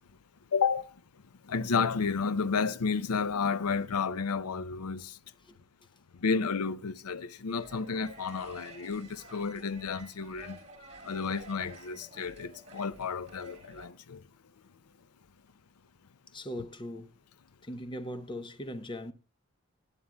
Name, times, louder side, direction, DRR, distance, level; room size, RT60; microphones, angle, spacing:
voice 1, 0.5-0.9 1.5-5.2 6.2-10.6 11.0-14.2, left 5 dB, 80° left, 0.6 m, -31 dB
sound 1, 7.6-13.9, right 1 dB, 30° right, 3.6 m, -51 dB
voice 2, 16.3-17.1 17.6-19.1, left 1 dB, 20° left, 0.8 m, -39 dB
18.5 x 10.0 x 2.3 m
head